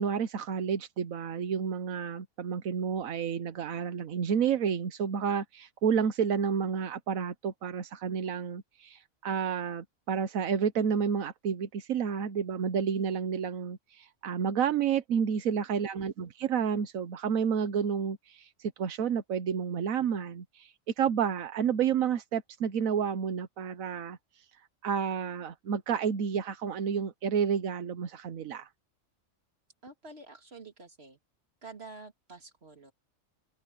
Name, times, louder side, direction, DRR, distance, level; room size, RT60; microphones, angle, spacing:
voice 1, 0.0-24.2 24.8-28.7, right 7 dB, 90° right, 1.4 m, -30 dB
voice 2, 16.0-16.3 29.8-31.2 31.6-32.9, right 3 dB, 50° right, 3.4 m, -49 dB
open air
omnidirectional pair, 1.4 m